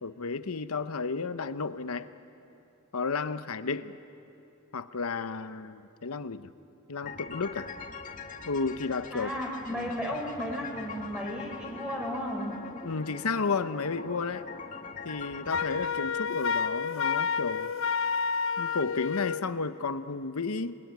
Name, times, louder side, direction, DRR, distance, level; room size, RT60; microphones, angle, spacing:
voice 1, 0.0-2.1 2.9-3.9 4.7-6.5 6.9-7.7 8.4-9.3 9.7-9.9 12.8-14.4 15.0-17.7 18.6-20.8, left 4 dB, 85° left, 12 dB, 0.9 m, -32 dB
sound 1, 7.0-15.9, left 4 dB, 35° left, 1.5 m, -43 dB
voice 2, 9.1-12.5, equal, 5° right, -1 dB, 4.3 m, -34 dB
Wind instrument woodwind instrument, 15.5-19.4, left 6 dB, 60° left, 0.5 m, -30 dB
28.0 x 21.5 x 9.4 m, 2.8 s
head